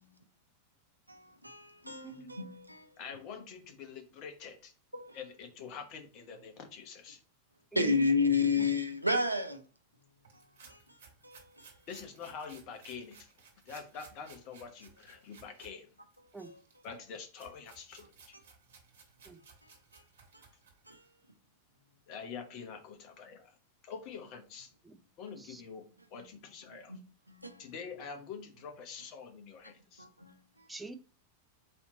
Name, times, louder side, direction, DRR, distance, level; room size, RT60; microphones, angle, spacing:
voice 1, 1.1-3.0 4.9-5.2 7.7-9.6 10.3-11.8 16.4-16.6 19.6-20.0 20.3-20.5 20.8-21.1 26.2-26.3 26.7-27.0 27.3-27.7 29.6-30.7, left 3 dB, 85° right, 0.5 m, -33 dB
voice 2, 1.8-2.3 7.7-7.9 8.6-8.7 16.3-16.5 19.3-19.4 24.8-25.0 25.4-25.6 30.7-30.9, right 3 dB, 10° right, 0.5 m, -45 dB
voice 3, 3.0-4.7 5.1-7.2 11.9-13.3 13.6-15.9 16.8-18.1 22.1-23.5 23.8-24.7 25.2-25.8 26.1-26.9 27.6-30.1, left 6 dB, 40° left, 0.9 m, -45 dB
sound 1, 10.2-15.7 16.1-21.1, right 5 dB, 55° right, 1.6 m, -59 dB
4.1 x 2.9 x 3.9 m
figure-of-eight pair, 90°, 0 cm